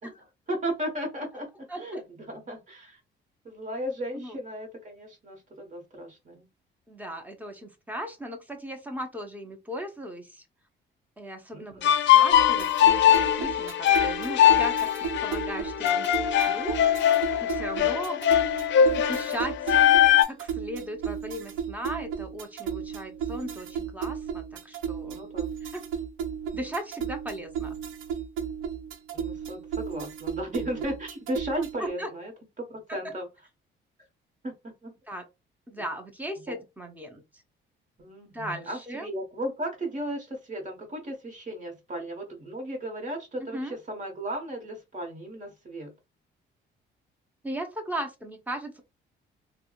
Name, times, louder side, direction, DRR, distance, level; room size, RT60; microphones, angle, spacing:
voice 1, 0.0-3.0 3.4-6.5 11.5-11.9 17.8-18.0 25.1-25.5 29.1-32.3 32.6-33.3 34.4-34.9 36.5-36.6 38.0-45.9, right 1 dB, 40° right, 1.3 m, -35 dB
voice 2, 6.9-10.4 11.2-11.8 12.1-16.8 17.4-18.2 19.0-19.8 20.3-25.2 25.6-25.8 26.5-27.8 31.6-32.1 32.9-33.1 35.1-35.3 35.7-37.2 38.3-39.1 43.4-43.8 47.4-48.8, right 1 dB, 10° right, 0.9 m, -37 dB
sound 1, 11.8-20.2, left 10 dB, 65° left, 0.5 m, -21 dB
sound 2, 12.3-31.9, right 7 dB, 90° right, 0.5 m, -34 dB
3.4 x 2.2 x 2.4 m
cardioid pair, 90°, 20 cm